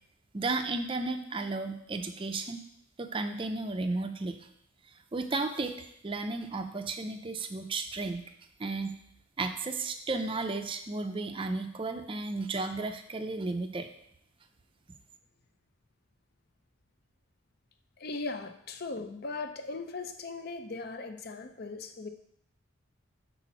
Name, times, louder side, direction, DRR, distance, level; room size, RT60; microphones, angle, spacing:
voice 1, 0.3-2.6 3.0-4.4 5.1-8.2 8.6-9.0 9.4-13.9, right 3 dB, 25° right, 7 dB, 0.5 m, -33 dB
voice 2, 18.0-22.1, left 3 dB, 50° left, 7 dB, 0.6 m, -38 dB
5.8 x 4.1 x 5.9 m, 0.72 s
head